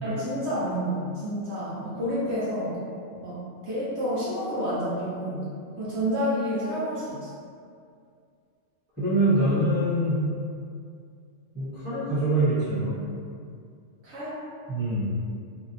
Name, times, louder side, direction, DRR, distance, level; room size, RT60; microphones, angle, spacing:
voice 1, 0.0-2.8 3.2-5.5 5.8-7.3 14.0-14.4, equal, 65° right, -9 dB, 0.9 m, -29 dB
voice 2, 9.0-10.2 11.5-13.0 14.7-15.1, right 1 dB, 10° right, -12 dB, 0.7 m, -24 dB
2.7 x 2.1 x 2.6 m, 2.3 s
omnidirectional pair, 1.3 m